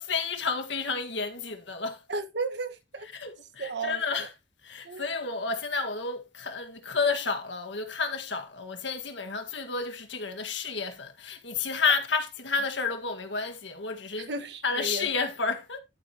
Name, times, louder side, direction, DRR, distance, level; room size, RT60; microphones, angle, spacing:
voice 1, 0.0-2.0 3.1-4.3 4.6-14.3 14.6-15.8, left 4 dB, 85° left, 1.8 m, -31 dB
voice 2, 2.1-3.1 3.6-4.0 4.8-5.0 14.2-15.1, right 3 dB, 70° right, 1.5 m, -34 dB
12.5 x 7.8 x 2.9 m
head